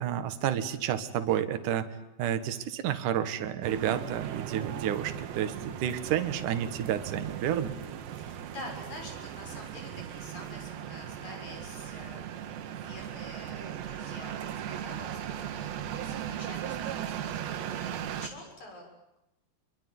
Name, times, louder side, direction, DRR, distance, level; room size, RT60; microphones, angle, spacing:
voice 1, 0.0-1.9 2.2-7.8, right 10 dB, 60° right, 9 dB, 2.7 m, -30 dB
sound 1, 3.6-18.3, right 10 dB, 90° right, 3.8 m, -38 dB
voice 2, 8.1-18.8, left 2 dB, 45° left, 3 dB, 8.1 m, -47 dB
27.5 x 23.0 x 9.5 m, 0.88 s
omnidirectional pair, 4.9 m